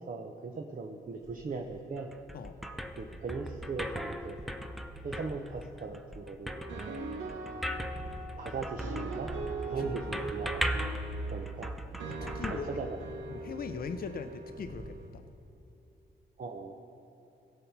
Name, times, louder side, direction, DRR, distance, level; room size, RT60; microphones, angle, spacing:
voice 1, 0.0-2.1 3.0-4.4 5.0-6.6 8.4-9.3 9.7-10.8 11.3-11.7 12.2-13.0 16.4-16.7, right 4 dB, 45° right, 3 dB, 0.8 m, -39 dB
sound 1, 1.0-1.9 2.5-6.2 6.5-7.2 7.6-13.2 13.4-15.2, right 1 dB, 15° right, 1.0 m, -51 dB
sound 2, 2.0-13.4, equal, ahead, 0.5 m, -38 dB
sound 3, 6.5-15.1, right 3 dB, 85° right, 0.9 m, -42 dB
voice 2, 9.7-10.2 12.1-12.8 13.3-15.2, left 6 dB, 50° left, 8 dB, 0.6 m, -41 dB
16.5 x 5.7 x 4.5 m, 3.0 s
cardioid pair, 65°, 20 cm